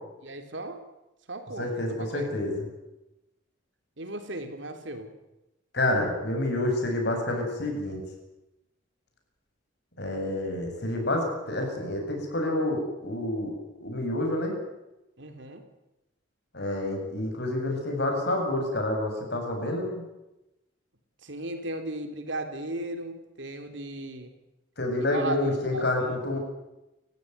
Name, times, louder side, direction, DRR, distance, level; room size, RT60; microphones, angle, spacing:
voice 1, 0.2-0.8 1.3-2.3 4.0-5.1 15.2-15.6 21.2-24.3 25.0-26.2, right 2 dB, 60° right, 7 dB, 3.4 m, -36 dB
voice 2, 1.6-2.5 5.7-8.0 10.0-14.6 16.5-20.0 24.8-26.4, left 1 dB, 55° left, 3 dB, 7.9 m, -28 dB
29.5 x 16.0 x 9.5 m, 0.97 s
head